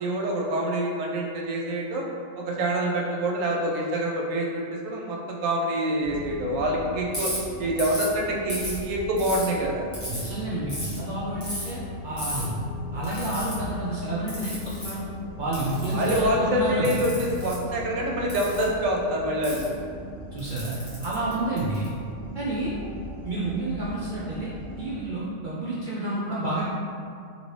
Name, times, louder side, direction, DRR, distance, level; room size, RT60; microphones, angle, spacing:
voice 1, 0.0-2.0 2.4-7.3 7.6-9.9 15.9-19.7, right 1 dB, 85° right, -2 dB, 1.0 m, -26 dB
sound 1, 6.0-25.0, left 1 dB, 25° right, 0.7 m, -39 dB
Ratchet pawl, 7.1-7.4 7.8-8.1 8.5-9.4 9.9-10.3 10.7-11.0 11.4-11.7 12.2-12.4 13.0-13.5 14.3-14.9 15.5-16.3 16.8-17.5 18.3-18.6 19.4-19.6 20.4-21.8, equal, 20° left, 1.1 m, -34 dB
voice 2, 10.1-12.6 12.9-15.1 15.4-16.9 20.3-21.9 22.3-22.7 23.2-24.5 24.8-26.7, right 2 dB, 70° right, -8 dB, 0.4 m, -30 dB
2.9 x 2.7 x 3.1 m, 2.3 s
omnidirectional pair, 1.3 m